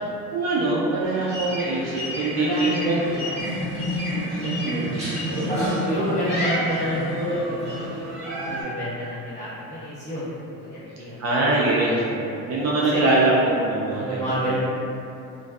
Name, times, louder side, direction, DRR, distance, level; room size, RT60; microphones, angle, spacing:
voice 1, 0.0-3.0 4.1-5.5 6.0-6.3 11.2-14.6, right 2 dB, 50° right, -5 dB, 0.4 m, -24 dB
sound 1, 1.0-8.6, equal, 20° right, 1.1 m, -30 dB
voice 2, 2.4-3.7 5.3-11.2 11.6-12.0 12.8-13.4 13.9-14.6, equal, 20° left, -13 dB, 1.1 m, -31 dB
sound 2, 3.4-7.4, equal, 70° left, 0.9 m, -30 dB
2.5 x 2.3 x 2.2 m, 2.7 s
cardioid pair, 130°, 34 cm